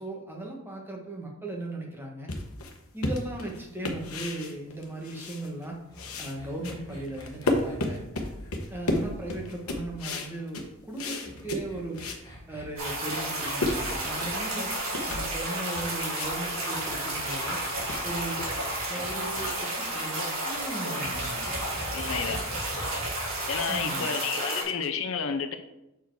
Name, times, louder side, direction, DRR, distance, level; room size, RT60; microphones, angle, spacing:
voice 1, 0.0-2.4 2.9-5.8 6.2-8.0 8.7-12.1 12.5-14.7 15.1-17.6 18.0-18.5 18.9-21.4 23.7-24.1, right 2 dB, 10° right, -1 dB, 1.2 m, -37 dB
sound 1, 2.3-5.7 5.9-12.3 12.7-12.8 13.1-21.3, left 2 dB, 85° left, 1.1 m, -34 dB
sound 2, 5.9-10.3 11.2-15.4 16.7-19.5 21.0-23.8, equal, 15° left, 1.2 m, -44 dB
sound 3, 12.8-24.6, right 1 dB, 70° right, 2.8 m, -32 dB
voice 2, 21.9-22.4 23.5-25.6, left 6 dB, 65° left, 8 dB, 0.6 m, -30 dB
6.9 x 4.6 x 4.6 m, 0.89 s
head